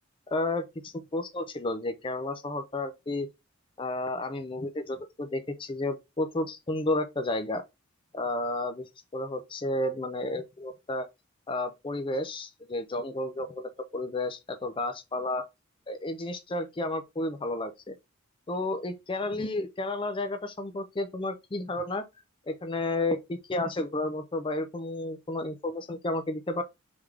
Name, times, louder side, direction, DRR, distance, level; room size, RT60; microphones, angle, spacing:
voice 1, 0.3-3.3 3.8-7.6 8.1-11.1 11.5-15.5 15.9-17.9 18.5-22.0 22.5-26.6, left 2 dB, 25° left, 0.5 m, -32 dB
3.6 x 3.5 x 3.2 m
head